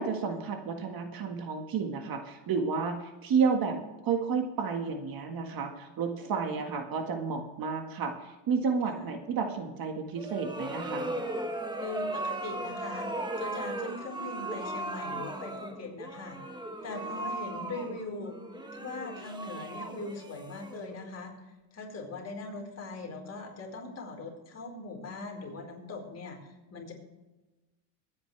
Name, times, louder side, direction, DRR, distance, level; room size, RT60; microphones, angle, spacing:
voice 1, 0.0-3.8 4.0-11.2, right 5 dB, 50° right, 4 dB, 1.8 m, -31 dB
sound 1, 10.2-21.1, right 1 dB, 10° right, 1.4 m, -37 dB
voice 2, 11.7-13.1 13.4-16.4 16.8-18.5 18.7-21.3 21.7-26.9, left 3 dB, 35° left, 0 dB, 4.5 m, -40 dB
23.0 x 9.7 x 3.4 m, 1.1 s
cardioid pair, 125°, 45 cm